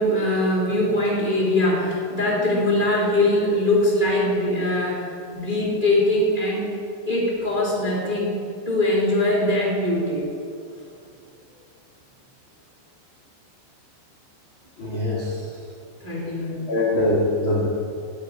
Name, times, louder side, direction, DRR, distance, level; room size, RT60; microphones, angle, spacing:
voice 1, 0.0-5.0 5.3-6.6 7.1-8.3 8.7-10.3 16.0-16.7, left 1 dB, 15° right, -5 dB, 1.9 m, -22 dB
voice 2, 14.8-15.4 16.7-17.7, left 1 dB, 50° left, -6 dB, 1.5 m, -22 dB
17.5 x 8.8 x 4.8 m, 2.4 s
omnidirectional pair, 5.2 m